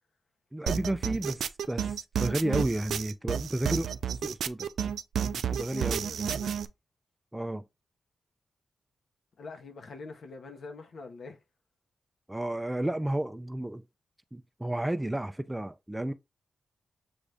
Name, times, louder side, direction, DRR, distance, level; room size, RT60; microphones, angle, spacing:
voice 1, 0.5-3.9 4.2-4.7 5.3-6.4 7.3-7.6 12.3-13.8 14.3-16.1, right 1 dB, 10° right, 0.4 m, -32 dB
sound 1, 0.7-6.7, right 8 dB, 85° right, 0.3 m, -31 dB
voice 2, 5.8-6.6 9.4-11.4, left 3 dB, 70° left, 1.0 m, -45 dB
6.1 x 2.6 x 3.3 m
cardioid pair, 85°, 0 cm